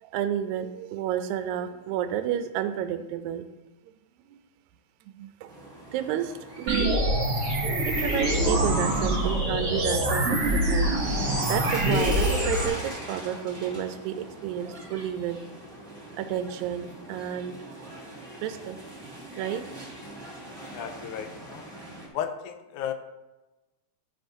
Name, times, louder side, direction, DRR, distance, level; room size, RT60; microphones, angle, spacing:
voice 1, 0.0-3.5 4.3-4.4 5.1-5.5 5.9-7.0 7.9-10.9 11.5-15.4 16.2-17.6 18.4-18.8 19.4-19.7, right 10 dB, 80° right, 8 dB, 2.0 m, -31 dB
sound 1, 5.5-22.1, right 1 dB, 15° right, 1.8 m, -39 dB
sound 2, 6.7-12.7, right 1 dB, 35° right, 2.1 m, -25 dB
voice 2, 20.7-21.6 22.1-22.9, left 9 dB, 85° left, 8 dB, 2.1 m, -34 dB
10.0 x 9.8 x 2.6 m, 1.1 s
omnidirectional pair, 3.5 m